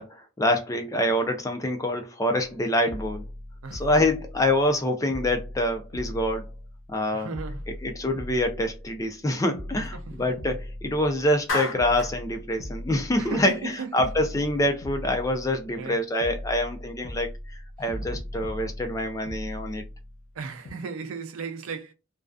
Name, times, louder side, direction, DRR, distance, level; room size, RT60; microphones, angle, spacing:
voice 1, 0.0-3.2 3.7-6.5 6.9-7.3 7.7-17.3 17.8-19.8, left 1 dB, 15° left, 0.3 m, -26 dB
sound 1, 2.4-2.6 2.9-4.8 5.1-7.0 7.3-9.2 9.5-11.5 11.8-13.6 14.0-15.9 16.2-20.3 20.6-20.7, left 1 dB, 90° left, 0.8 m, -39 dB
voice 2, 3.6-4.0 7.1-7.6 9.8-10.3 13.2-14.1 15.8-16.0 20.4-21.9, right 4 dB, 85° right, 0.4 m, -36 dB
Clapping, 11.5-12.2, left 2 dB, 70° left, 0.9 m, -30 dB
2.4 x 2.3 x 2.3 m
head